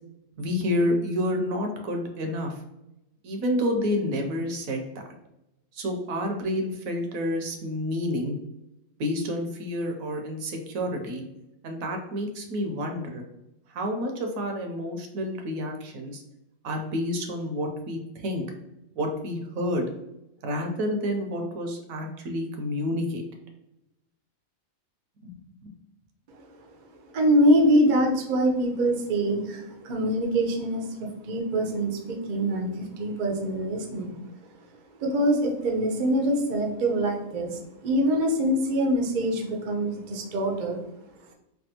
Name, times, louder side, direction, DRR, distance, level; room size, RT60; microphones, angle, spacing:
voice 1, 0.4-2.6 3.2-4.8 5.7-8.4 9.0-11.2 11.6-13.2 13.7-16.2 16.6-18.4 19.0-19.9 20.4-23.2 25.2-25.3, left 1 dB, 80° right, 3 dB, 1.0 m, -29 dB
voice 2, 27.1-34.2 35.0-40.8, right 1 dB, 60° right, 2 dB, 0.5 m, -24 dB
3.3 x 2.3 x 2.8 m, 0.88 s
omnidirectional pair, 1.4 m